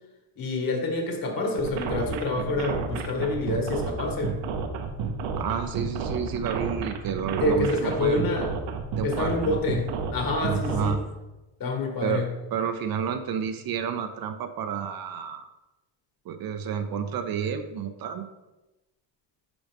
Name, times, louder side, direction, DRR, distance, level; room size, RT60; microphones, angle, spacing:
voice 1, 0.4-4.4 7.4-8.5 9.0-11.0 11.6-12.3, left 2 dB, 45° left, 1 dB, 2.0 m, -27 dB
sound 1, 1.6-10.9, right 5 dB, 70° right, 1.1 m, -31 dB
voice 2, 5.4-8.2 8.9-9.6 10.4-11.0 12.0-12.2 12.5-15.5 16.3-18.3, right 7 dB, 45° right, 8 dB, 0.7 m, -30 dB
11.0 x 5.1 x 3.5 m, 1.0 s
cardioid pair, 140°, 48 cm